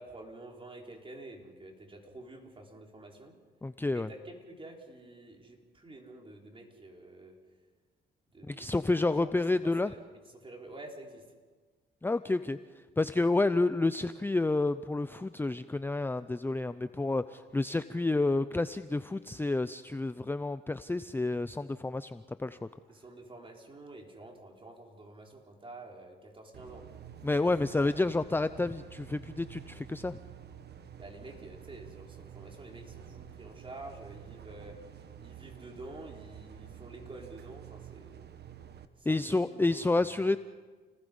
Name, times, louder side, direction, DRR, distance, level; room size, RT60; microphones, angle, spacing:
voice 1, 0.0-3.4 3.9-7.4 8.3-10.0 10.3-11.3 22.9-26.9 27.2-28.0 31.0-38.2 38.9-40.3, right 2 dB, 25° right, 0 dB, 4.8 m, -49 dB
voice 2, 3.6-4.1 8.4-9.9 12.0-22.6 27.2-30.2 39.1-40.4, left 2 dB, 10° left, 12 dB, 0.6 m, -29 dB
sound 1, 26.5-38.8, right 9 dB, 55° right, 1.6 m, -49 dB
29.5 x 20.0 x 5.5 m, 1.4 s
cardioid pair, 90°, 20 cm